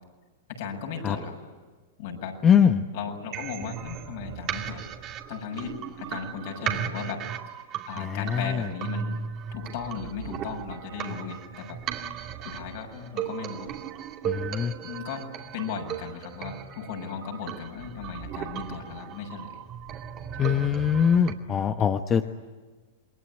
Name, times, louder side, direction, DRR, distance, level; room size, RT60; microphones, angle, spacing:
voice 1, 0.6-1.3 2.0-2.4 2.9-4.8 5.3-7.3 7.9-9.2 9.5-11.8 12.4-13.7 14.8-15.3 15.5-19.5 20.4-20.8 22.1-22.2, left 6 dB, 65° left, 2 dB, 7.1 m, -36 dB
voice 2, 2.4-2.9 8.0-8.7 14.2-14.7 20.4-22.3, left 7 dB, 25° left, 7 dB, 1.2 m, -22 dB
sound 1, 3.3-21.3, right 9 dB, 40° right, 2.6 m, -36 dB
28.0 x 21.5 x 9.8 m, 1.3 s
hypercardioid pair, 115°, 0 cm